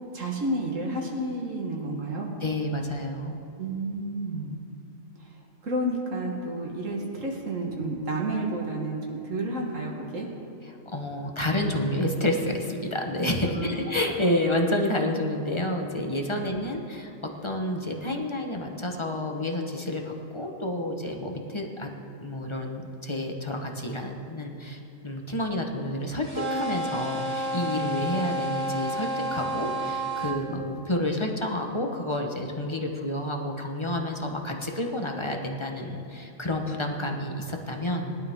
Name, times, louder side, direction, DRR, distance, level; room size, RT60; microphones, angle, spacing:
voice 1, 0.1-2.3 3.6-4.5 5.2-5.4 5.6-10.3 13.5-14.2 16.3-16.5 27.7-27.9, right 1 dB, 70° right, -1 dB, 1.7 m, -31 dB
voice 2, 2.4-3.4 10.9-21.9 22.2-38.2, left 1 dB, 25° left, 2 dB, 1.0 m, -29 dB
sound 1, 26.2-30.4, right 1 dB, 10° right, 2.6 m, -30 dB
19.5 x 11.5 x 3.6 m, 2.6 s
omnidirectional pair, 1.4 m